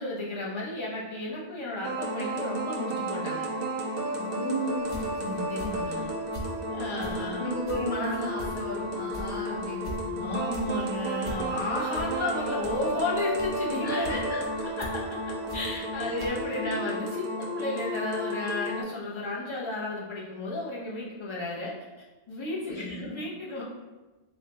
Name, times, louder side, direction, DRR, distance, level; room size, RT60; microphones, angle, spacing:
voice 1, 0.0-3.5 5.2-6.1 6.7-7.5 10.1-14.1 14.8-23.6, left 2 dB, 30° left, -5 dB, 0.7 m, -33 dB
sound 1, 1.8-18.8, right 1 dB, 65° right, 0.8 m, -33 dB
voice 2, 4.2-5.1 6.8-9.9 13.8-14.6 16.0-16.2 16.6-16.8 22.7-23.1, equal, 70° left, -8 dB, 1.0 m, -34 dB
sound 2, 4.8-6.6 6.9-16.3, equal, 25° right, 0.7 m, -41 dB
3.5 x 2.2 x 3.8 m, 1.1 s
omnidirectional pair, 1.1 m